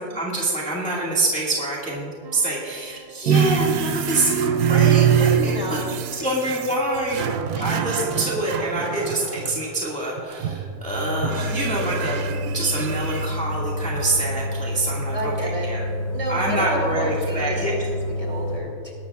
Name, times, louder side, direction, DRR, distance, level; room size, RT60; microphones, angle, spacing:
voice 1, 0.0-5.5 6.2-7.3 7.6-12.2 12.5-15.8 16.3-17.7, right 2 dB, 5° left, -5 dB, 1.7 m, -26 dB
sound 1, 2.2-3.9 5.0-6.5 8.0-9.6 11.0-12.5 14.0-15.7 17.0-18.0, right 4 dB, 50° right, 1.1 m, -43 dB
sound 2, 3.3-9.7 10.2-10.8 11.2-13.3, right 8 dB, 90° right, 1.1 m, -24 dB
voice 2, 5.4-5.9 7.6-7.7 15.1-15.7 16.1-17.9 18.2-18.9, right 1 dB, 25° right, -2 dB, 2.7 m, -30 dB
sound 3, 10.9-18.6, left 1 dB, 70° left, 2.5 m, -28 dB
20.5 x 12.0 x 2.4 m, 2.3 s
omnidirectional pair, 1.5 m